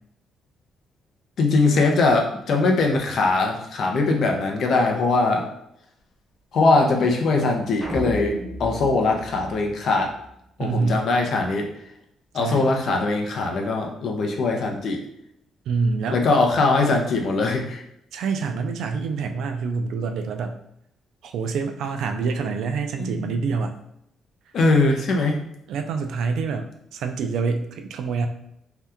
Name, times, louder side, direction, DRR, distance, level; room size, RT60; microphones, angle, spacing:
voice 1, 1.4-5.4 6.5-8.3 8.6-10.1 10.6-11.7 12.3-15.0 16.1-17.8 23.0-23.2 24.5-25.4, left 3 dB, 55° left, 2 dB, 0.6 m, -21 dB
sound 1, 7.8-10.3, equal, 5° left, 0.8 m, -33 dB
voice 2, 10.6-11.0 12.4-12.7 15.7-16.2 18.1-20.5 21.2-23.7 25.7-28.3, right 4 dB, 80° right, 6 dB, 0.3 m, -26 dB
2.8 x 2.3 x 3.4 m, 0.78 s
cardioid pair, 140°, 0 cm